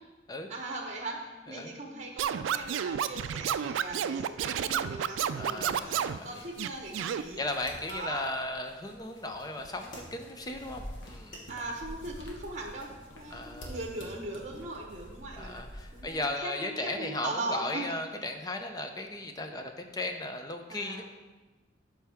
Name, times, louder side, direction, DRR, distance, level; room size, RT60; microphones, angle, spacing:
voice 1, 0.5-7.5 7.9-8.2 11.5-15.7 15.9-17.9 20.7-21.0, right 2 dB, 35° right, 0 dB, 1.1 m, -39 dB
Scratching (performance technique), 2.2-6.2 6.6-7.2, right 9 dB, 85° right, 0.3 m, -31 dB
sound 1, 5.3-16.2, equal, 85° left, 1.4 m, -48 dB
voice 2, 5.4-6.4 7.4-11.4 13.3-13.8 15.4-21.0, left 2 dB, 20° left, 5 dB, 0.5 m, -36 dB
sound 2, 9.1-14.3, equal, 45° left, 1.8 m, -54 dB
12.0 x 4.7 x 3.5 m, 1.2 s
head